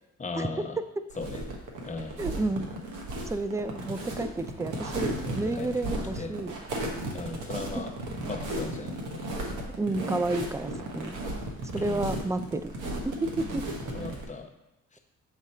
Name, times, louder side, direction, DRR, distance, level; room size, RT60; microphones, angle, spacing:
voice 1, 0.2-0.8 1.2-1.4 1.8-2.2 5.2-5.7 6.2-6.3 7.1-7.9 8.3-9.0 11.8-12.1 13.9-14.5 14.9-15.0, left 3 dB, 25° left, 4 dB, 0.9 m, -37 dB
sound 1, 1.1-14.2, right 1 dB, 85° right, 1.3 m, -35 dB
voice 2, 2.2-2.7 3.3-6.5 7.8-7.9 9.8-11.2 11.7-12.7 13.0-13.7, right 2 dB, 10° right, 10 dB, 0.4 m, -31 dB
7.2 x 3.7 x 4.3 m, 0.94 s
cardioid pair, 90°, 30 cm